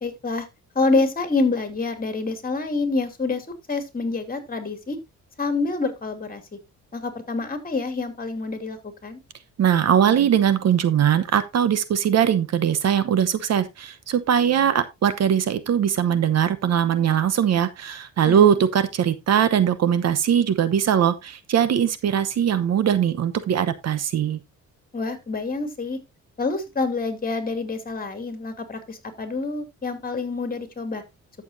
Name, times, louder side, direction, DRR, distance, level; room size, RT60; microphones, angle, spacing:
voice 1, 0.0-0.5 0.7-5.0 5.4-6.4 6.9-9.2 18.2-18.6 24.9-26.0 26.4-31.0, left 3 dB, 30° left, 2.8 m, -27 dB
voice 2, 9.6-24.4, right 9 dB, 60° right, 1.0 m, -21 dB
13.5 x 7.0 x 2.7 m
cardioid pair, 90°, 30 cm